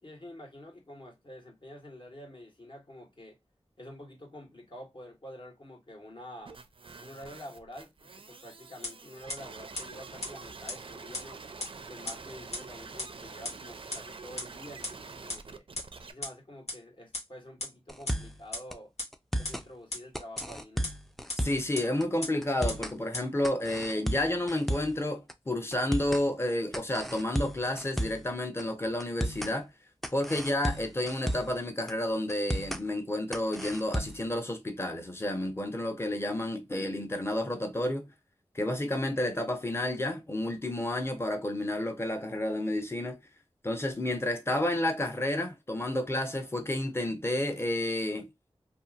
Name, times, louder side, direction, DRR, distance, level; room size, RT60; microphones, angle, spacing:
voice 1, 0.0-3.4 3.8-6.6 7.0-11.4 11.7-15.7 16.1-18.9 19.4-20.9, left 1 dB, 50° left, 1.3 m, -48 dB
sound 1, 6.5-16.1, right 4 dB, 55° right, 0.4 m, -46 dB
sound 2, 8.8-8.9 9.3-9.4 9.8-9.9 10.2-10.3 10.7-10.8 11.1-11.2 11.6-11.7 12.1-12.2 12.5-12.6 13.0-13.1 13.4-13.5 13.9-14.0 14.4-14.5 14.8-14.9 15.3-15.4 15.8-15.9 16.2-16.3 16.7-16.8 17.1-17.2 17.6-17.7 18.1-18.2 18.5-18.6 19.0-19.1 19.4-19.5 19.9-20.0 20.4-20.5 20.8-20.9 21.3-21.4 21.8-21.9 22.2-22.3 22.7-22.8 23.1-23.2, left 2 dB, 85° left, 1.2 m, -33 dB
sound 3, 17.9-18.4 18.7-18.8 19.1-19.7 20.1-21.7 22.0-22.1 22.4-23.0 23.4-25.0 25.3-25.4 25.7-26.2 26.7-28.3 28.6-28.7 29.0-29.5 30.0-31.6 31.9-32.0 32.3-32.8 33.3-34.3, equal, ahead, 0.4 m, -33 dB
voice 2, 21.4-29.7 30.1-38.1 38.5-43.2 43.6-48.3, left 1 dB, 25° left, 0.7 m, -31 dB
2.8 x 2.4 x 2.4 m
wide cardioid pair, 70°, 11 cm